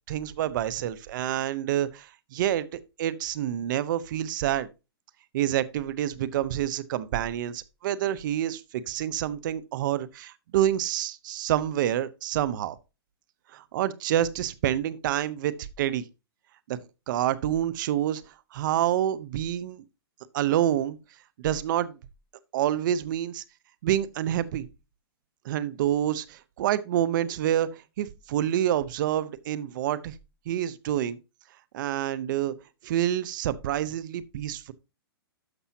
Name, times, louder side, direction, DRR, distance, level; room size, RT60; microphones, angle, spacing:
voice 1, 0.1-4.7 5.3-12.8 13.5-16.0 16.7-19.8 20.3-21.0 21.4-22.0 22.5-23.4 23.8-24.7 25.4-30.1 30.5-31.2 31.7-32.5 32.8-34.7, right 11 dB, 50° right, 0.8 m, -28 dB
13.0 x 5.5 x 2.8 m
hypercardioid pair, 145°, 13 cm